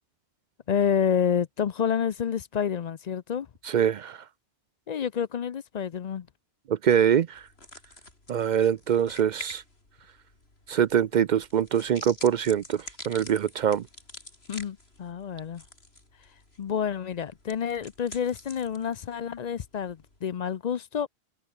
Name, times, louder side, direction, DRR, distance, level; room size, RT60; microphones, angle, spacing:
voice 1, 0.7-3.5 4.9-6.3 14.5-15.6 16.6-21.1, left 8 dB, 50° left, 0.6 m, -28 dB
voice 2, 3.6-4.2 6.7-7.4 8.3-9.6 10.7-13.8, right 9 dB, 55° right, 0.5 m, -24 dB
sound 1, 7.3-20.2, left 2 dB, 75° left, 4.8 m, -48 dB
omnidirectional pair, 1.1 m